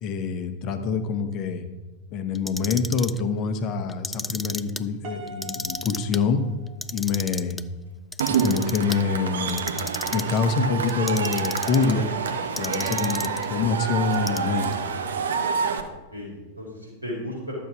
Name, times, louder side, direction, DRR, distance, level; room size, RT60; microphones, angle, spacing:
voice 1, 0.0-1.7 2.1-6.4 6.9-7.6 8.4-9.7 10.1-12.1 12.6-14.7, left 5 dB, 35° left, 8 dB, 1.1 m, -26 dB
Clock, 2.4-3.2 3.9-4.8 5.3-6.2 6.7-7.6 8.1-9.0 9.5-10.4 10.9-11.9 12.6-13.5 14.1-14.7, left 2 dB, 10° left, 0.4 m, -33 dB
Piano, 5.0-7.3, right 3 dB, 45° right, 1.7 m, -42 dB
Cheering / Crowd, 8.2-15.8, right 6 dB, 65° right, 1.0 m, -28 dB
voice 2, 15.8-17.5, equal, 80° right, -3 dB, 4.6 m, -36 dB
12.0 x 7.3 x 6.1 m, 1.2 s
figure-of-eight pair, 90°, 0 cm